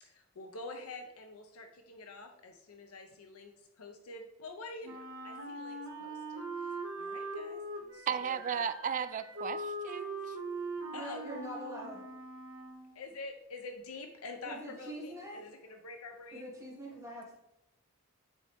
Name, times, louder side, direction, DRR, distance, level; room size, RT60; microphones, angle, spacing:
voice 1, 0.0-7.6 7.9-8.4 10.9-11.2 12.9-16.5, left 3 dB, 80° left, 5 dB, 0.6 m, -47 dB
Wind instrument woodwind instrument, 4.8-12.9, right 2 dB, 60° right, 1.3 m, -41 dB
voice 2, 8.1-10.4, right 7 dB, 35° right, 13 dB, 0.3 m, -35 dB
voice 3, 10.9-12.1 14.4-15.8 16.3-17.3, equal, 15° right, -6 dB, 2.2 m, -44 dB
9.2 x 4.2 x 3.4 m, 0.85 s
head